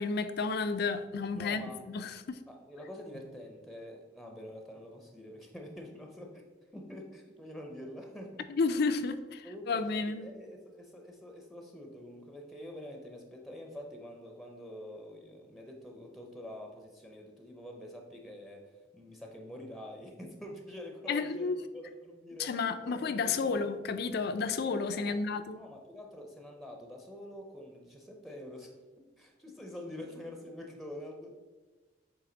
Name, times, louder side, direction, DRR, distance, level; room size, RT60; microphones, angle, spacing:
voice 1, 0.0-2.4 8.5-10.3 21.1-21.6 22.4-25.6, left 4 dB, 60° left, 0.4 m, -32 dB
voice 2, 1.4-1.9 2.5-6.4 6.7-8.5 9.4-23.7 24.8-25.2 25.6-31.3, left 1 dB, ahead, 0.6 m, -46 dB
7.6 x 3.3 x 3.9 m
head